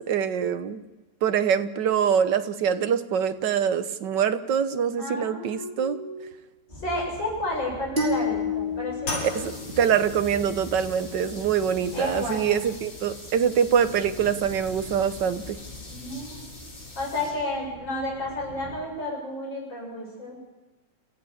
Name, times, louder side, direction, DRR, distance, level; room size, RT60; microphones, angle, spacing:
voice 1, 0.1-0.8 1.2-6.0 9.2-15.6, right 8 dB, 65° right, 11 dB, 1.6 m, -24 dB
voice 2, 5.0-6.2 6.8-9.1 11.9-12.6 15.9-16.6 17.0-20.4, left 1 dB, 65° left, -1 dB, 8.2 m, -32 dB
sound 1, 6.7-18.8, left 1 dB, 20° left, 5.4 m, -44 dB
sound 2, 8.0-10.4, left 3 dB, 20° right, 5.7 m, -30 dB
sound 3, 9.0-17.6, left 2 dB, 80° left, 7.1 m, -41 dB
27.0 x 15.0 x 7.3 m, 1.1 s
omnidirectional pair, 2.2 m